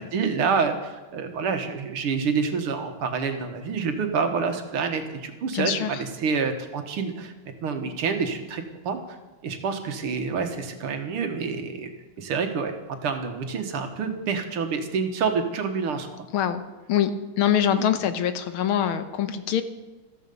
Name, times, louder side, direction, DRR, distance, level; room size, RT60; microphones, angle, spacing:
voice 1, 0.1-7.3 7.6-9.0 9.4-11.9 12.2-16.3 17.9-18.0, right 5 dB, 85° right, 6 dB, 2.3 m, -27 dB
voice 2, 5.5-5.9 16.3-16.6 16.9-17.1 17.4-19.6, left 9 dB, 80° left, 10 dB, 1.8 m, -24 dB
14.5 x 14.0 x 5.4 m, 1.1 s
omnidirectional pair, 2.4 m